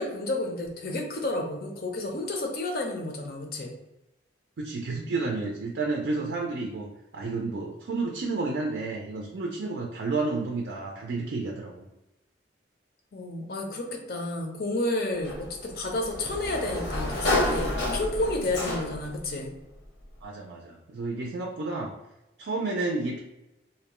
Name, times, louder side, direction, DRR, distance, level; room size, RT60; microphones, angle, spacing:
voice 1, 0.0-3.8 13.1-19.5, left 2 dB, 55° left, 2 dB, 0.5 m, -31 dB
voice 2, 4.6-6.9 7.1-11.9 20.2-21.9 22.4-23.2, right 3 dB, 75° right, 0 dB, 0.4 m, -31 dB
Sliding door, 15.2-19.2, left 1 dB, 80° left, 0.8 m, -29 dB
2.6 x 2.1 x 2.9 m, 0.94 s
head